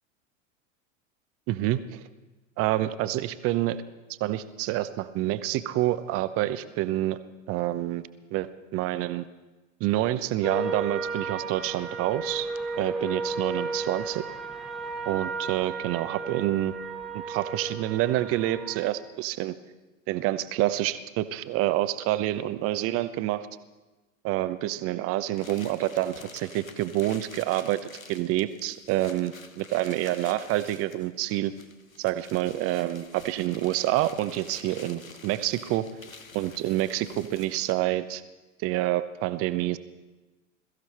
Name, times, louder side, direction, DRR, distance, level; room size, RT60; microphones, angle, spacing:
voice 1, 1.5-2.0 2.6-3.8 4.2-7.2 7.5-8.0 8.3-9.3 9.8-12.5 12.8-14.2 15.0-16.7 17.1-19.5 20.1-23.5 24.2-31.5 32.0-35.9 36.3-38.2 38.6-39.8, right 15 dB, 35° right, 13 dB, 0.9 m, -27 dB
sound 1, 10.4-18.9, right 3 dB, ahead, 1.2 m, -34 dB
sound 2, 25.3-37.9, left 4 dB, 90° left, 1.0 m, -48 dB
22.0 x 14.5 x 4.3 m, 1.1 s
figure-of-eight pair, 85°, 40 cm